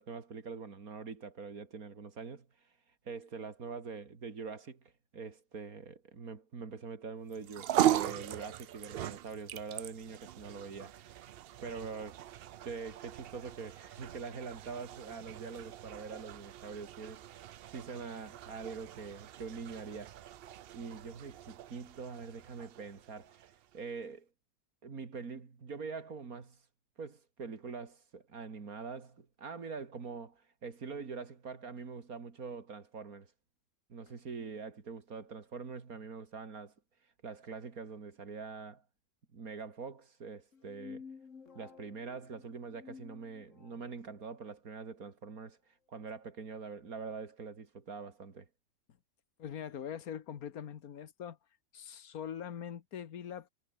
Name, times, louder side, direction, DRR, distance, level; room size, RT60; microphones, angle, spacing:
voice 1, 0.0-2.5 3.0-11.2 11.6-12.2 12.6-17.3 17.7-20.2 20.7-24.3 24.8-26.6 27.0-33.3 33.9-36.7 37.2-38.8 39.3-41.0 41.5-48.5, right 5 dB, 80° right, 2.8 m, -44 dB
sound 1, 7.3-23.8, right 12 dB, 65° right, 0.6 m, -39 dB
sound 2, 40.5-43.9, left 5 dB, 60° left, 2.1 m, -52 dB
voice 2, 49.4-51.4 51.7-53.5, left 8 dB, 90° left, 1.7 m, -42 dB
omnidirectional pair, 1.5 m